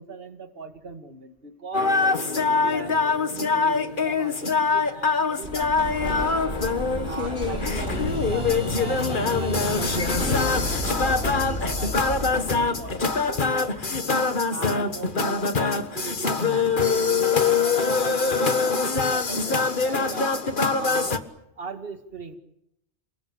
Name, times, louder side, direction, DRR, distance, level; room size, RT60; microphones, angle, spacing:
voice 1, 0.0-6.6 7.0-13.9 14.5-20.3 20.7-21.2 21.6-22.4, right 4 dB, 50° right, 6 dB, 2.3 m, -40 dB
sound 1, 1.7-21.2, left 4 dB, 45° left, 1.7 m, -24 dB
Explosion, 5.4-14.1, left 1 dB, 80° left, 5.7 m, -31 dB
30.0 x 20.0 x 8.7 m, 0.83 s
omnidirectional pair, 1.2 m